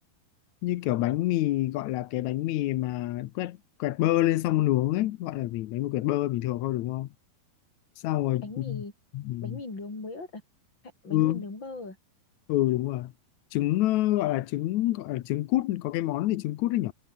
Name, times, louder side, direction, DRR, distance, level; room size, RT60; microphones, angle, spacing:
voice 1, 0.6-7.1 8.0-8.8 9.1-9.6 11.1-11.4 12.5-13.1 13.5-16.9, left 15 dB, 80° left, 1.7 m, -27 dB
voice 2, 8.4-8.9 9.4-10.4 11.0-12.0, left 3 dB, 30° left, 6.7 m, -38 dB
omnidirectional pair, 4.3 m